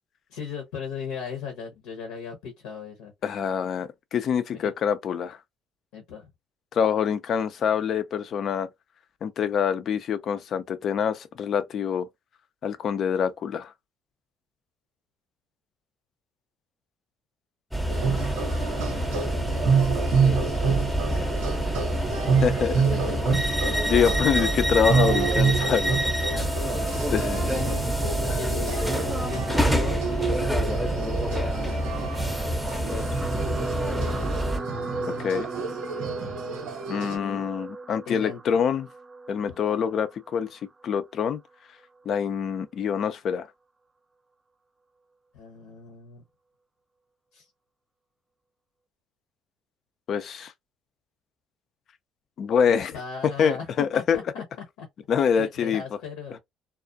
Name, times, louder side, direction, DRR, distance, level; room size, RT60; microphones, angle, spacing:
voice 1, 0.3-3.1 4.5-4.7 5.9-6.3 20.1-21.7 22.9-23.8 26.3-26.9 27.5-27.8 28.3-28.9 29.2-32.1 32.8-33.4 33.8-34.4 37.1-37.5 38.0-38.4 39.5-39.6 45.3-46.2 47.3-47.5 52.7-54.4 54.8-54.9 55.3-56.4, left 6 dB, 80° left, 0.8 m, -38 dB
voice 2, 3.2-5.4 6.7-8.7 9.2-12.1 12.6-13.7 22.4-22.8 23.9-25.9 27.1-27.5 28.2-28.4 35.1-35.5 36.9-38.9 39.3-41.4 42.1-43.5 50.1-50.5 52.4-52.9 53.4-54.2 55.1-55.8, left 7 dB, 55° left, 0.5 m, -25 dB
sound 1, 17.7-34.6, right 1 dB, ahead, 0.7 m, -27 dB
sound 2, 17.9-37.2, right 5 dB, 80° right, 0.9 m, -28 dB
sound 3, 32.9-41.3 42.1-42.3 42.6-42.7, right 3 dB, 20° right, 0.3 m, -37 dB
2.4 x 2.1 x 2.6 m
supercardioid pair, 70°, 0 cm